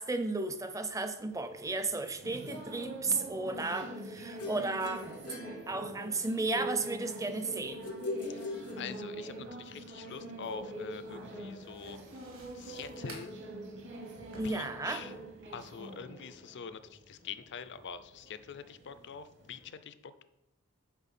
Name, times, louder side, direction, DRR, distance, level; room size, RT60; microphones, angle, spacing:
voice 1, 0.0-5.1 5.7-7.9 14.3-15.0, right 3 dB, 15° right, 8 dB, 0.5 m, -34 dB
sound 1, 1.3-19.7, right 1 dB, 55° right, 1.2 m, -45 dB
sound 2, 4.4-6.3 7.8-9.4, left 3 dB, 80° left, 0.8 m, -41 dB
voice 2, 8.3-12.0 12.5-13.4 14.4-15.1 15.5-20.2, left 6 dB, 50° left, 12 dB, 0.5 m, -45 dB
sound 3, 10.5-15.6, right 3 dB, 70° right, 1.9 m, -56 dB
8.2 x 4.4 x 4.2 m, 0.87 s
head